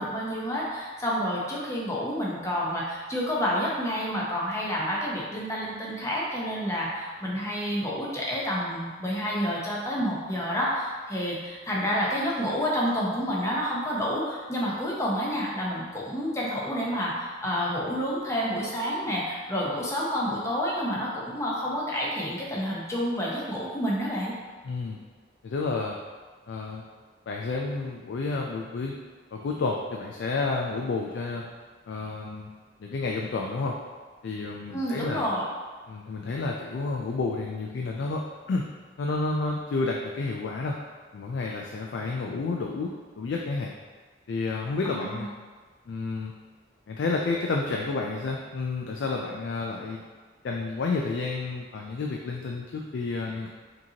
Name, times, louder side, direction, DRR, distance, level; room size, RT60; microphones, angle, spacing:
voice 1, 0.0-24.3 34.7-35.4 44.8-45.3, equal, 15° left, -5 dB, 0.7 m, -29 dB
voice 2, 24.6-25.0 25.4-26.0 26.5-26.8 27.3-29.0 29.3-31.4 31.9-32.5 32.8-33.8 34.2-35.2 35.9-38.2 38.5-38.7 39.0-40.8 41.1-43.7 44.3-45.3 45.9-46.3 46.9-50.0 50.4-53.5, left 3 dB, 75° left, 0 dB, 0.3 m, -30 dB
5.0 x 2.9 x 2.8 m, 1.4 s
head